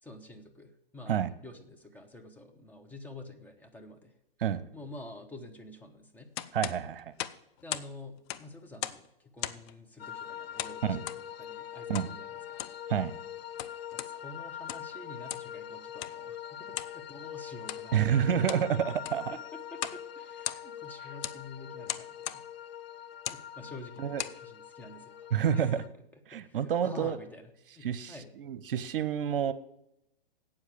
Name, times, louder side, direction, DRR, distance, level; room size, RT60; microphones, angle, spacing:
voice 1, 0.0-4.1 4.7-6.6 7.6-12.7 13.9-18.4 18.7-22.4 23.3-25.9 26.3-28.3, left 2 dB, 5° left, 3 dB, 1.0 m, -49 dB
sound 1, 6.3-7.9 8.2-9.1 9.4-9.7 10.6-11.2 11.9-12.1 12.5-12.8 13.4-14.1 14.5-14.9 15.3-15.5 16.0-16.2 16.7-17.0 17.6-17.8 18.3-18.7 19.0-19.3 19.7-20.0 20.3-20.8 21.2-21.4 21.9-22.4 23.1-23.4 24.0-24.4, left 12 dB, 30° left, 0.5 m, -38 dB
voice 2, 6.5-7.1 10.8-11.0 11.9-12.1 12.9-13.1 17.9-19.2 24.0-24.2 25.3-25.8 26.3-27.2 27.8-29.5, right 8 dB, 65° right, 14 dB, 0.9 m, -28 dB
sound 2, 10.0-25.9, left 10 dB, 85° left, 0.6 m, -43 dB
8.8 x 7.3 x 8.4 m, 0.81 s
hypercardioid pair, 130°, 29 cm